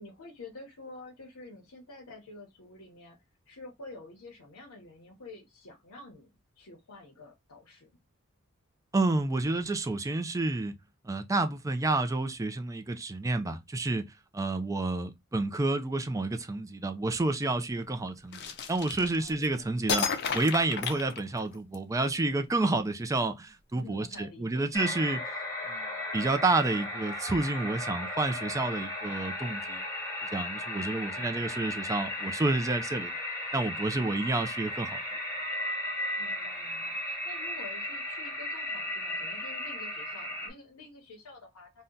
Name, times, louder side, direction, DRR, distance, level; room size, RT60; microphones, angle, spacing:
voice 1, 0.0-8.0 19.1-19.9 23.7-24.7 31.0-31.6 36.2-41.8, left 2 dB, 90° left, 0.8 m, -49 dB
voice 2, 8.9-10.7 11.0-14.0 14.3-25.2 25.7-25.8 26.1-29.8 30.3-33.1 33.5-35.0, right 2 dB, 15° right, 0.4 m, -29 dB
sound 1, 18.3-19.5 19.9-21.8, left 6 dB, 50° left, 0.5 m, -32 dB
sound 2, 24.7-40.5, left 1 dB, 15° left, 1.0 m, -35 dB
2.7 x 2.1 x 3.6 m
head